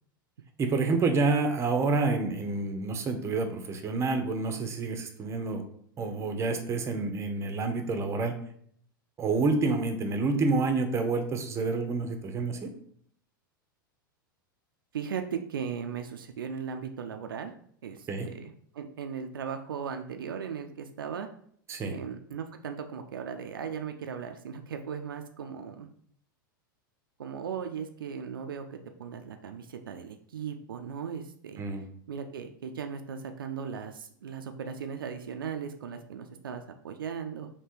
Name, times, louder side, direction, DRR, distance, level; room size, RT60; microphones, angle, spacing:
voice 1, 0.6-5.6 6.0-8.3 9.2-12.7 18.1-18.3 21.7-21.9 31.6-31.8, right 3 dB, 25° right, 6 dB, 0.7 m, -28 dB
voice 2, 14.9-17.5 17.8-21.3 21.8-25.9 27.2-31.6 32.1-37.5, right 7 dB, 80° right, 6 dB, 0.4 m, -37 dB
3.4 x 2.8 x 4.3 m, 0.63 s
hypercardioid pair, 95°, 11 cm